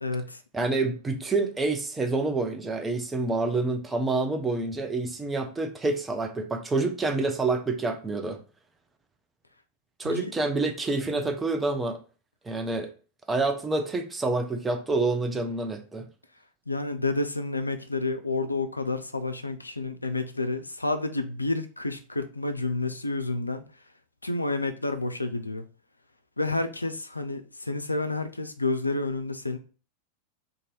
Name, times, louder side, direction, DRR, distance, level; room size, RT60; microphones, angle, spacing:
voice 1, 0.0-0.4 10.0-10.3 16.7-23.6 24.2-25.6 26.4-29.6, left 2 dB, 80° left, 0.3 m, -30 dB
voice 2, 0.5-8.4 10.0-12.0 12.4-12.9 13.3-16.0, right 3 dB, 15° right, 0.5 m, -27 dB
2.6 x 2.5 x 3.1 m
figure-of-eight pair, 90°, 0 cm